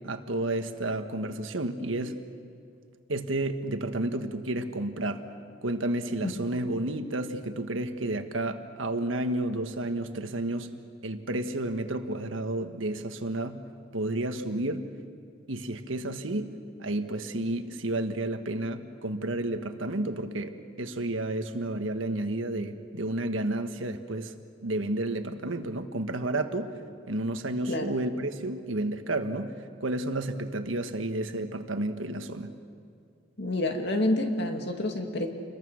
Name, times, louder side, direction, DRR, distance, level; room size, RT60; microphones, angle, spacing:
voice 1, 0.0-2.2 3.1-5.3 5.6-10.7 11.0-13.6 13.9-14.9 15.5-24.3 24.6-26.7 27.1-29.5 29.8-32.5, right 1 dB, 90° right, 7 dB, 1.5 m, -31 dB
voice 2, 33.4-35.3, left 1 dB, 60° left, 4 dB, 2.3 m, -28 dB
29.0 x 21.5 x 6.4 m, 2.3 s
head